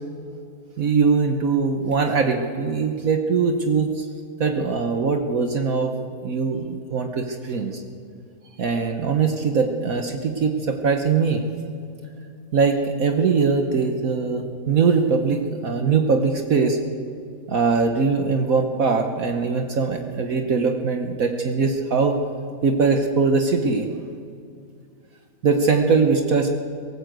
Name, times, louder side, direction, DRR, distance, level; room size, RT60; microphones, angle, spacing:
voice 1, 0.8-4.1 4.4-5.9 6.2-7.8 8.6-11.4 12.5-16.8 17.5-22.2 22.6-23.9 25.4-26.6, right 4 dB, 60° right, 4 dB, 1.4 m, -21 dB
18.0 x 17.5 x 8.0 m, 2.4 s
omnidirectional pair, 1.7 m